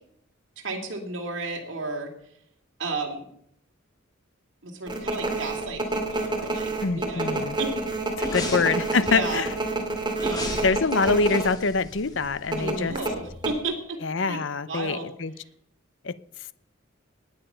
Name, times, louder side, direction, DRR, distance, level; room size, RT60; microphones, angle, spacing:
voice 1, 0.6-2.1 2.8-3.2 4.6-5.8 6.1-7.9 8.3-8.7 9.0-9.5 10.2-10.6 12.6-14.0 14.3-14.4 14.7-15.1, right 3 dB, 60° right, 1 dB, 2.6 m, -33 dB
sound 1, 4.9-11.5 11.8-11.9 12.5-13.5, right 2 dB, 20° right, 2.4 m, -28 dB
voice 2, 6.8-7.6 8.2-9.5 10.6-13.0 14.0-15.3 16.0-16.1, left 4 dB, 60° left, 16 dB, 0.7 m, -25 dB
sound 2, 8.2-9.3 10.2-12.6 12.9-13.0, left 2 dB, 20° left, 2.7 m, -37 dB
19.0 x 9.3 x 5.7 m, 0.70 s
head